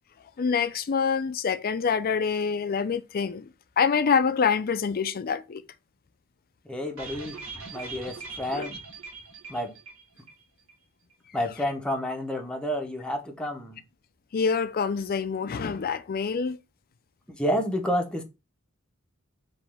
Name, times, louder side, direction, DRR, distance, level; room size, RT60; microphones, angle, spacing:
voice 1, 0.4-3.5 3.8-5.6 8.5-8.7 14.3-16.6, left 6 dB, 45° left, 0.4 m, -26 dB
voice 2, 6.6-7.4 7.7-8.8 9.5-9.7 11.3-13.8 17.3-18.2, equal, 5° left, 0.7 m, -30 dB
sound 1, 7.0-10.4 10.7-10.8 11.1-11.2, right 4 dB, 75° right, 1.5 m, -41 dB
5.1 x 2.9 x 3.4 m
head